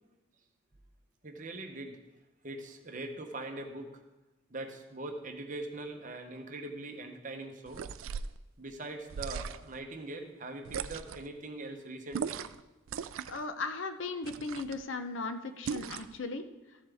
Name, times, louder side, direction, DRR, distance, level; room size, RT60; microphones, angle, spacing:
voice 1, 1.2-2.0 2.4-4.0 4.5-7.9 8.6-12.4, right 2 dB, 35° right, 4 dB, 0.9 m, -42 dB
sound 1, 7.7-8.4 9.1-9.8 10.6-11.3 12.1-12.6 12.9-13.4 14.2-14.8 15.6-16.2, right 6 dB, 75° right, 0.3 m, -38 dB
voice 2, 13.3-16.4, left 3 dB, 65° left, 9 dB, 0.6 m, -37 dB
14.0 x 7.4 x 3.5 m, 1.1 s
head